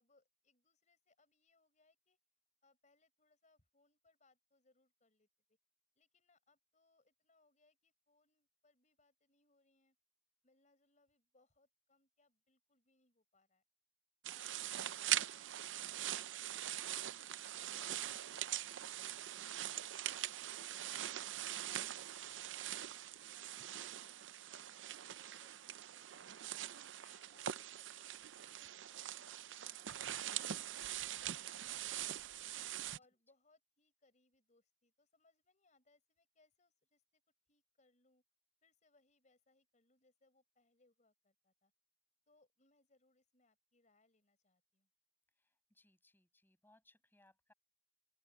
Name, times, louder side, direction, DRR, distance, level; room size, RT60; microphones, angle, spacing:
voice 1, 0.0-2.2 2.6-5.6 6.0-10.0 10.4-13.6 14.2-19.4 19.8-26.3 26.9-29.3 29.7-32.1 32.4-32.6 32.9-37.2 37.5-38.2 38.6-41.7 42.3-44.9, left 3 dB, 40° left, 5.4 m, -75 dB
sound 1, 14.2-33.0, right 12 dB, 85° right, 0.6 m, -43 dB
voice 2, 45.4-47.5, left 2 dB, 10° left, 7.2 m, -71 dB
open air
head